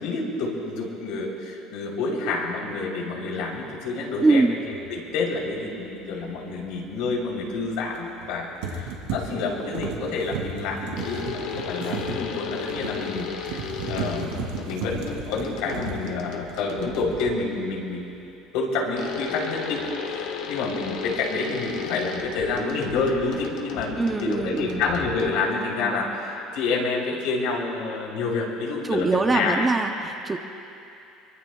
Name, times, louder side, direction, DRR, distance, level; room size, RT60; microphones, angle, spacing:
voice 1, 0.0-4.6 4.9-18.1 18.5-29.7, left 3 dB, 70° left, -2 dB, 3.4 m, -28 dB
voice 2, 4.2-4.5 24.0-24.8 28.8-30.4, right 3 dB, 10° right, 5 dB, 0.5 m, -22 dB
sound 1, 4.6-4.8 7.9-8.3 8.6-16.8 17.1-17.6, right 5 dB, 85° right, 2.4 m, -35 dB
sound 2, 11.0-17.6 19.0-25.6, left 6 dB, 55° left, 1.3 m, -35 dB
24.0 x 23.0 x 2.3 m, 2.8 s
cardioid pair, 180°, 0 cm